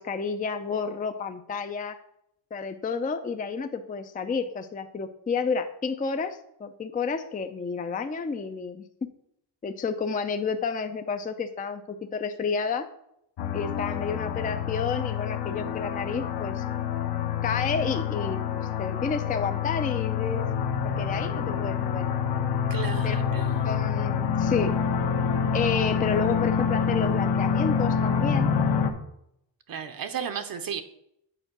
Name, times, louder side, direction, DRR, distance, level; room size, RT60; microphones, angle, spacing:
voice 1, 0.0-2.0 2.5-8.8 9.6-12.9 13.5-16.6 17.4-20.5 21.0-22.0 23.0-23.2 23.6-24.7 25.5-28.5, left 5 dB, 20° left, 8 dB, 0.4 m, -30 dB
sound 1, 13.4-28.9, left 7 dB, 65° left, 1.1 m, -27 dB
voice 2, 22.7-23.8 29.7-30.8, right 7 dB, 50° right, 8 dB, 0.8 m, -34 dB
7.9 x 4.4 x 6.0 m, 0.78 s
cardioid pair, 115°, 45 cm